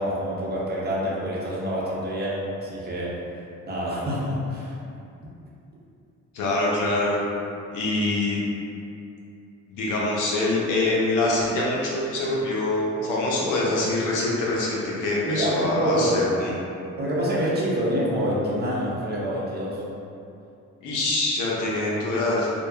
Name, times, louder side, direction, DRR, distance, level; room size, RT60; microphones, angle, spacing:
voice 1, 0.0-3.1 3.7-4.7 15.3-16.2 17.0-19.8, equal, 35° right, -6 dB, 0.6 m, -26 dB
voice 2, 6.3-7.2 7.7-8.4 9.7-16.5 20.8-22.5, left 2 dB, 85° left, -5 dB, 0.6 m, -24 dB
2.7 x 2.2 x 2.3 m, 2.7 s
cardioid pair, 90°, 30 cm